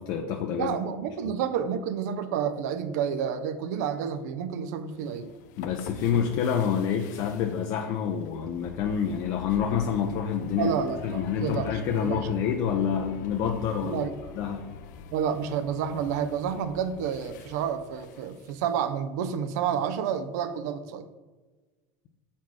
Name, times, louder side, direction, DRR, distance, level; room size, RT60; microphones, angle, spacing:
voice 1, 0.0-0.7 1.2-1.3 5.6-10.7 11.0-14.1 14.4-14.7, left 7 dB, 40° left, 3 dB, 0.5 m, -28 dB
voice 2, 0.6-5.3 10.5-12.3 13.8-14.1 15.1-21.1, right 8 dB, 75° right, 11 dB, 0.5 m, -30 dB
sound 1, 4.9-18.8, left 7 dB, 90° left, 0.6 m, -45 dB
7.1 x 4.3 x 4.6 m, 1.3 s
supercardioid pair, 165°, 9 cm